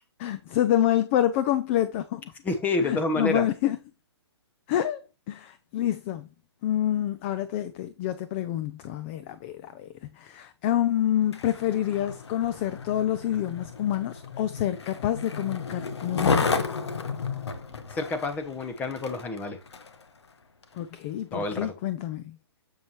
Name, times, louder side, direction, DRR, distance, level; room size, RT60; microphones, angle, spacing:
voice 1, 0.2-2.3 2.8-3.8 4.7-5.0 5.3-6.3 6.6-16.7 20.7-22.4, left 12 dB, 25° left, 0.5 m, -27 dB
voice 2, 2.4-3.5 17.9-19.6 21.3-21.7, left 2 dB, 10° left, 1.0 m, -28 dB
Skateboard, 11.2-20.0 20.6-20.8, left 4 dB, 80° left, 1.2 m, -32 dB
7.4 x 7.0 x 3.1 m
hypercardioid pair, 145°, 14 cm